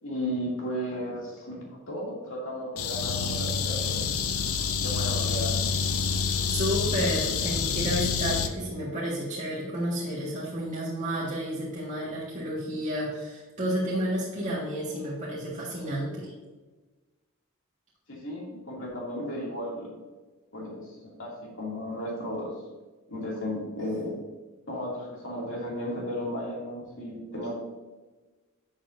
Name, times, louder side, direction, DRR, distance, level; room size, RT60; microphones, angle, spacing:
voice 1, 0.0-4.0 4.8-5.7 18.1-19.9 20.5-22.5 23.1-24.1 24.7-27.5, equal, 60° left, -3 dB, 2.7 m, -34 dB
sound 1, 2.8-8.5, left 6 dB, 85° left, 0.7 m, -27 dB
voice 2, 6.5-16.3, equal, 35° right, -6 dB, 1.7 m, -31 dB
11.0 x 6.3 x 2.7 m, 1.2 s
head